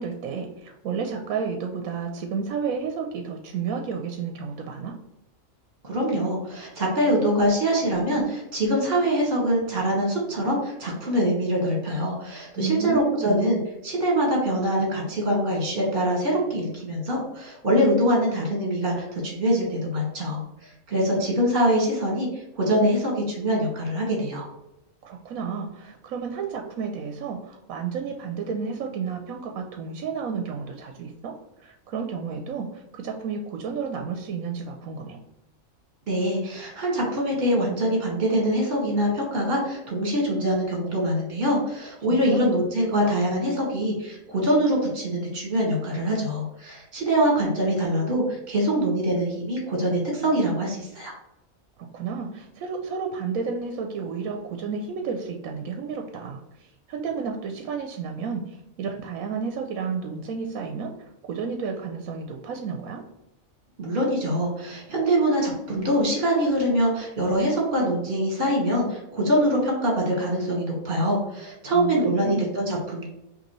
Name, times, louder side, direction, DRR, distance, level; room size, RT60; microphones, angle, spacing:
voice 1, 0.0-5.0 12.6-13.4 25.0-35.2 42.1-42.5 51.8-63.0 71.7-72.5, right 5 dB, 80° right, 3 dB, 1.0 m, -32 dB
voice 2, 5.8-24.5 36.1-51.1 63.8-73.1, equal, 45° right, -1 dB, 1.7 m, -24 dB
5.3 x 2.7 x 3.0 m, 0.91 s
omnidirectional pair, 1.4 m